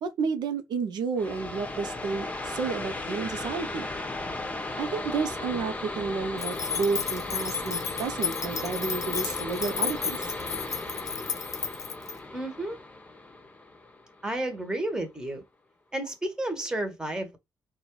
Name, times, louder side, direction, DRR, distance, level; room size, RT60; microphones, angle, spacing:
voice 1, 0.0-3.9 4.8-10.2, right 5 dB, 80° right, 0.8 m, -31 dB
sound 1, 1.2-14.5, left 2 dB, 20° left, 0.9 m, -36 dB
sound 2, 6.4-12.1, left 7 dB, 50° left, 0.6 m, -33 dB
voice 2, 12.3-12.8 14.2-15.4 15.9-17.4, right 1 dB, 10° right, 1.4 m, -31 dB
3.9 x 2.5 x 4.6 m
cardioid pair, 100°, 7 cm